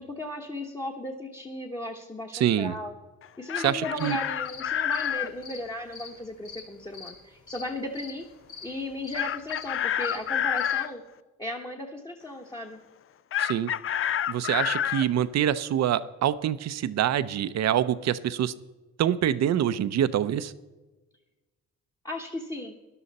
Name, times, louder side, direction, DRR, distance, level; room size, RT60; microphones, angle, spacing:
voice 1, 0.0-2.9 3.4-8.3 8.6-11.0 11.4-12.8 22.0-22.8, left 1 dB, 15° left, 1 dB, 1.2 m, -36 dB
voice 2, 2.3-2.7 3.6-4.2 13.4-13.7 14.3-18.5 19.0-20.5, right 10 dB, 60° right, 14 dB, 0.6 m, -25 dB
Chicken rooster, 3.2-5.3 9.1-10.9 13.3-15.1, left 10 dB, 45° left, 0.5 m, -28 dB
sound 1, 3.7-10.7, left 5 dB, 70° left, 2.3 m, -45 dB
12.5 x 11.0 x 4.1 m, 1.2 s
cardioid pair, 90°, 30 cm